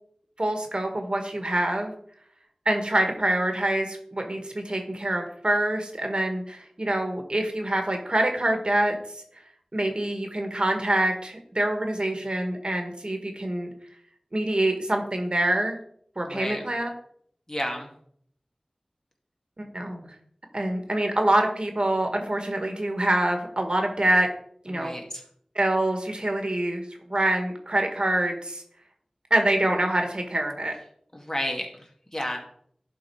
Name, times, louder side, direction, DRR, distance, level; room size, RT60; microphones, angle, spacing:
voice 1, 0.4-1.9 2.6-9.2 9.7-13.7 14.3-15.8 16.1-16.9 19.6-20.1 20.5-24.3 24.6-24.9 25.5-26.8 27.1-28.6 29.3-30.7, right 1 dB, 50° right, 4 dB, 1.6 m, -25 dB
voice 2, 16.2-16.6 17.5-17.9 24.7-25.2 31.1-32.4, left 1 dB, 25° left, 1 dB, 2.1 m, -32 dB
11.5 x 4.5 x 4.7 m, 0.64 s
wide cardioid pair, 45°, 2 cm